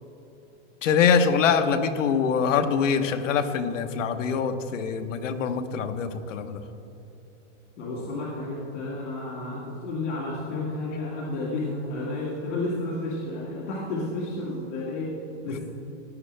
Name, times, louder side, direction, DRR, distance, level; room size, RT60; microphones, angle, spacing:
voice 1, 0.8-6.6, left 6 dB, 85° left, 8 dB, 1.1 m, -24 dB
voice 2, 7.8-15.1 15.4-15.6, left 2 dB, 65° left, -6 dB, 2.2 m, -31 dB
16.0 x 10.0 x 3.3 m, 2.9 s
supercardioid pair, 175°, 37 cm